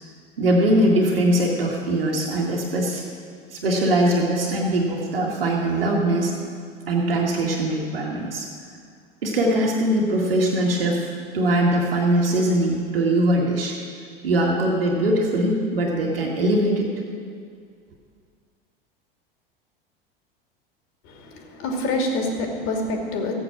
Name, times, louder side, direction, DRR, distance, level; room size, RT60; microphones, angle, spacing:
voice 1, 0.4-3.0 3.5-6.3 6.9-8.5 9.2-11.1 11.3-13.8 14.2-16.9, right 1 dB, 75° right, -2 dB, 2.1 m, -21 dB
voice 2, 21.0-23.3, left 2 dB, 45° left, 2 dB, 2.6 m, -26 dB
15.0 x 8.8 x 6.2 m, 2.1 s
figure-of-eight pair, 85°, 29 cm